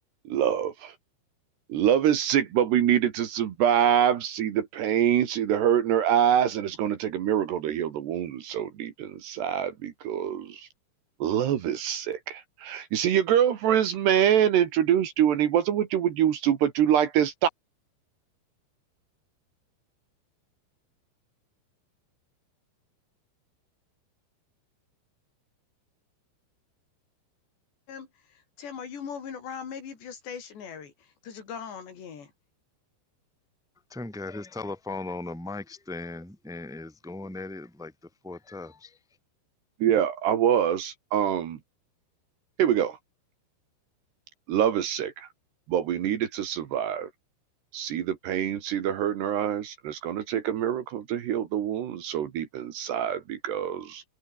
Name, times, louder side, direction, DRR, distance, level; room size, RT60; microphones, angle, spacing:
voice 1, 0.3-0.9 1.7-10.7 11.2-17.5 39.8-41.6 42.6-43.0 44.5-45.3 45.7-47.1 47.7-54.0, right 10 dB, 65° right, 3.7 m, -25 dB
voice 2, 27.9-32.3, left 7 dB, 60° left, 6.0 m, -40 dB
voice 3, 33.9-39.0, left 2 dB, ahead, 2.6 m, -38 dB
omnidirectional pair, 5.7 m